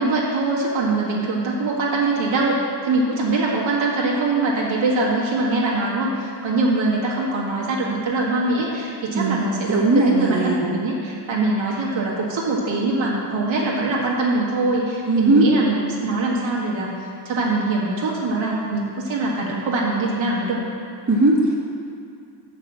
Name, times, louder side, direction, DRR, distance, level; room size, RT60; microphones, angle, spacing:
voice 1, 0.0-2.6 2.8-17.0 17.3-20.6, right 2 dB, 75° right, -5 dB, 1.9 m, -23 dB
voice 2, 9.1-10.6 15.1-15.5 21.1-21.5, right 2 dB, 35° right, -4 dB, 1.8 m, -18 dB
6.8 x 6.0 x 7.4 m, 2.5 s
cardioid pair, 75°, 47 cm